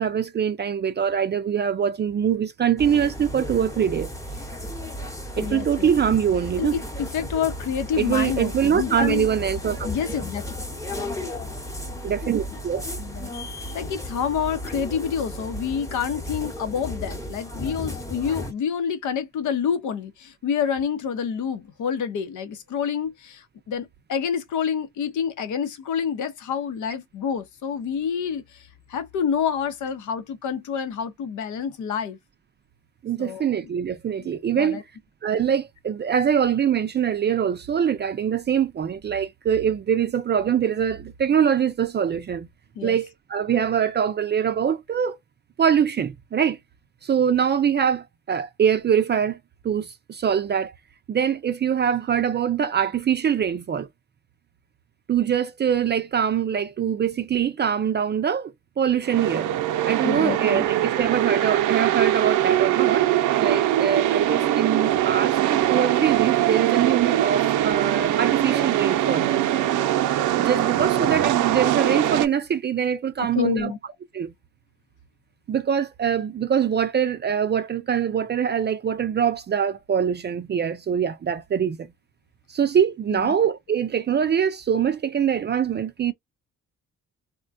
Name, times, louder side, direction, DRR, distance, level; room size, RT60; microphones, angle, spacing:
voice 1, 0.0-4.1 5.4-6.8 8.0-9.9 12.0-12.9 33.0-34.8 35.2-42.5 42.8-45.2 45.6-46.6 47.0-49.4 49.6-50.7 51.1-53.9 55.1-59.5 59.9-63.1 63.4-69.3 70.4-73.7 74.1-74.3 75.5-81.9 82.5-86.1, right 8 dB, 35° right, 0.4 m, -23 dB
sound 1, 2.8-18.5, left 1 dB, 10° left, 0.9 m, -34 dB
voice 2, 5.4-5.9 6.6-9.3 9.8-10.4 13.0-13.3 13.7-32.2 33.2-33.5 34.2-34.3 34.6-34.8 42.8-43.0 60.0-60.7 73.2-73.8 83.2-83.3, left 7 dB, 75° left, 0.8 m, -28 dB
sound 2, 59.0-72.3, right 13 dB, 80° right, 0.6 m, -22 dB
3.7 x 2.2 x 2.5 m
cardioid pair, 90°, 30 cm